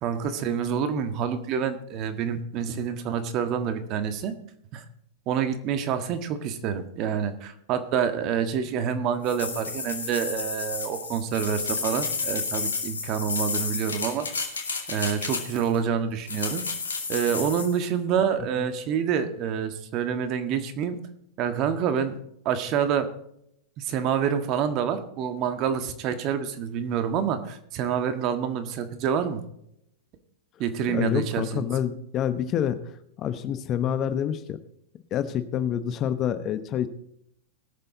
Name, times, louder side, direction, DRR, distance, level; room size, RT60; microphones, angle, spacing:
voice 1, 0.0-4.3 4.7-4.8 5.3-14.3 14.9-16.7 17.1-21.0 21.4-22.2 22.4-23.1 23.8-29.4 30.6-31.7, right 8 dB, 45° right, 9 dB, 1.5 m, -27 dB
sound 1, 9.2-15.8 16.3-17.8, left 4 dB, 90° left, 2.4 m, -31 dB
voice 2, 30.9-32.8 33.2-34.6 35.1-36.9, left 9 dB, 35° left, 12 dB, 1.0 m, -27 dB
20.0 x 6.8 x 4.0 m, 0.75 s
hypercardioid pair, 110°, 0 cm